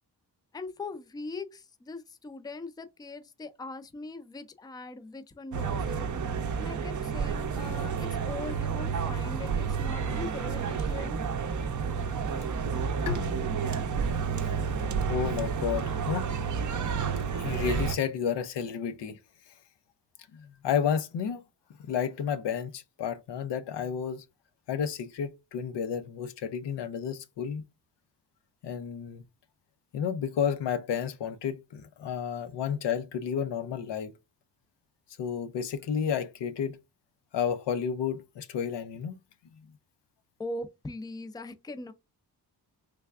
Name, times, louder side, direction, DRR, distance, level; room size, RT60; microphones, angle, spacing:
voice 1, 0.5-6.1 6.5-11.2 40.4-41.9, left 2 dB, 10° left, 0.4 m, -41 dB
sound 1, 5.5-18.0, right 6 dB, 50° right, 0.5 m, -30 dB
Bowed string instrument, 13.1-16.6, left 3 dB, 50° left, 0.8 m, -41 dB
voice 2, 15.1-16.3 17.3-19.2 20.3-21.4 21.8-24.2 24.7-27.6 28.6-29.2 29.9-34.1 35.2-36.8 37.3-39.2, left 7 dB, 90° left, 0.6 m, -31 dB
3.4 x 3.2 x 2.3 m
cardioid pair, 80°, 41 cm